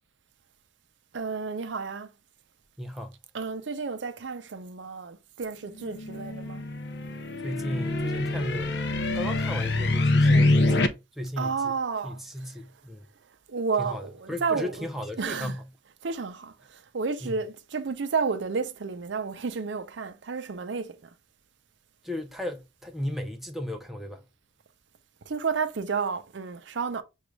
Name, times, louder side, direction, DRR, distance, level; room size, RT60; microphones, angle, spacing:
voice 1, 1.1-2.1 3.3-6.6 10.2-10.5 11.4-12.5 13.5-14.9 15.2-15.6 16.0-21.1 25.3-27.0, right 5 dB, 70° right, 0.5 m, -31 dB
voice 2, 2.8-3.2 7.4-8.7 9.1-11.7 12.0-13.1 13.8-15.7 17.2-17.4 22.0-24.2, left 1 dB, ahead, 0.4 m, -35 dB
sound 1, 5.9-10.9, left 2 dB, 60° left, 0.5 m, -25 dB
6.0 x 2.4 x 3.1 m
head